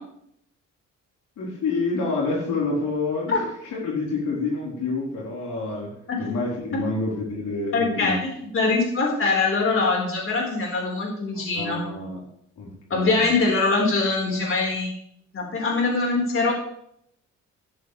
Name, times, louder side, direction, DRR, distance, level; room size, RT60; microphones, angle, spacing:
voice 1, 1.4-5.9 6.2-8.2 11.6-12.2 12.6-13.3, left 3 dB, 75° left, -4 dB, 4.3 m, -28 dB
voice 2, 7.7-8.2 8.5-11.8 12.9-14.9 15.3-16.5, left 3 dB, 45° left, -2 dB, 4.7 m, -23 dB
14.0 x 11.5 x 3.4 m, 0.72 s
cardioid pair, 90°, 30 cm